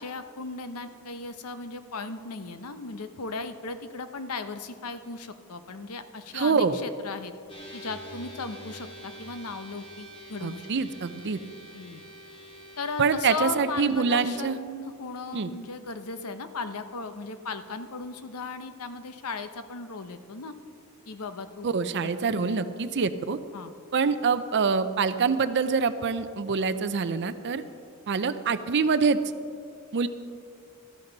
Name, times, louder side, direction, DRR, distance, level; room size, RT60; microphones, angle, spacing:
voice 1, 0.0-7.3 7.7-10.7 11.7-12.0 12.8-20.5 21.1-21.7 22.0-22.6 23.5-23.7 28.1-28.2, left 4 dB, 80° left, 10 dB, 0.8 m, -37 dB
voice 2, 6.3-6.8 10.4-11.4 13.0-14.6 15.3-15.5 21.6-23.4 23.9-27.6 28.1-29.2 29.9-30.1, right 5 dB, 50° right, 11 dB, 0.5 m, -25 dB
sound 1, 7.5-14.1, right 1 dB, 25° left, 2.3 m, -46 dB
15.5 x 13.5 x 4.0 m, 2.3 s
head